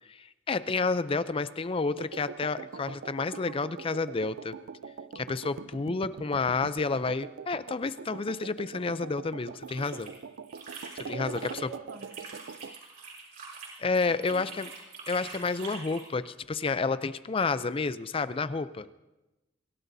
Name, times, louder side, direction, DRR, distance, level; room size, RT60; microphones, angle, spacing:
voice 1, 0.1-4.6 5.1-10.1 11.0-11.7 13.8-14.7 15.1-18.9, left 4 dB, 30° left, 14 dB, 0.4 m, -30 dB
sound 1, 2.0-12.8, right 5 dB, 75° right, 0.4 m, -43 dB
sound 2, 9.4-11.6 11.9-16.1, right 4 dB, 50° right, 6.3 m, -45 dB
voice 2, 11.1-12.2 14.1-14.5, right 4 dB, 90° right, 1 dB, 2.1 m, -44 dB
25.5 x 16.5 x 2.7 m, 1.0 s
head